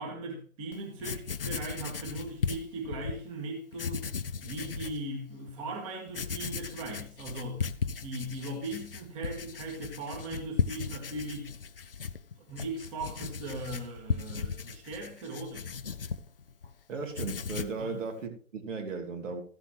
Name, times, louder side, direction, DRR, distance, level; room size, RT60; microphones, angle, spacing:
voice 1, 0.0-4.0 4.4-7.6 8.0-11.5 12.4-15.7 17.8-18.0, right 2 dB, 20° right, 2.2 m, -38 dB
Writing, 0.7-3.2 3.7-5.0 5.5-5.6 6.1-16.7 17.0-17.8, left 5 dB, 40° left, 0.5 m, -36 dB
voice 2, 16.9-19.4, right 4 dB, 55° right, 3.0 m, -36 dB
15.0 x 7.8 x 3.1 m
hypercardioid pair, 155°, 45 cm